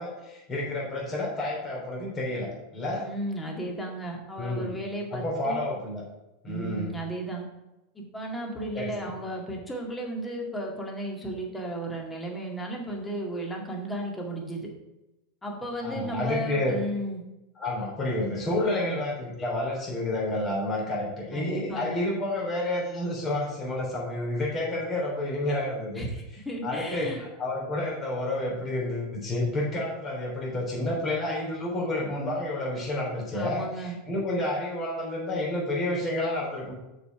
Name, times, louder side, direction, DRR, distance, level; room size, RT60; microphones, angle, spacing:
voice 1, 0.0-3.0 4.4-4.7 5.1-6.0 6.4-6.9 8.7-9.1 15.8-16.8 17.6-26.1 26.6-36.7, left 1 dB, 30° left, -2 dB, 3.2 m, -30 dB
voice 2, 3.0-5.6 6.5-7.4 7.9-14.7 15.4-17.2 18.8-19.0 21.3-22.0 25.9-27.2 33.3-34.0, right 1 dB, 15° left, 0 dB, 2.1 m, -34 dB
6.7 x 5.0 x 5.9 m, 0.97 s
hypercardioid pair, 95°, 0 cm